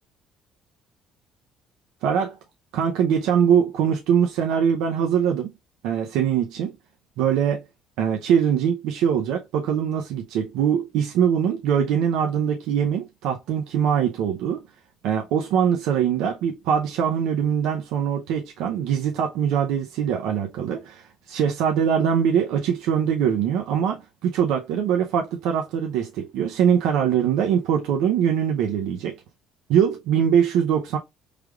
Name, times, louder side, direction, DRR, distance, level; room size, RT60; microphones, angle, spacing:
voice 1, 2.0-2.4 2.7-5.5 5.8-6.7 7.2-7.6 8.0-14.6 15.0-29.1 29.7-31.0, right 8 dB, 85° right, 0.6 m, -22 dB
4.8 x 3.3 x 2.3 m
cardioid pair, 165°, 0 cm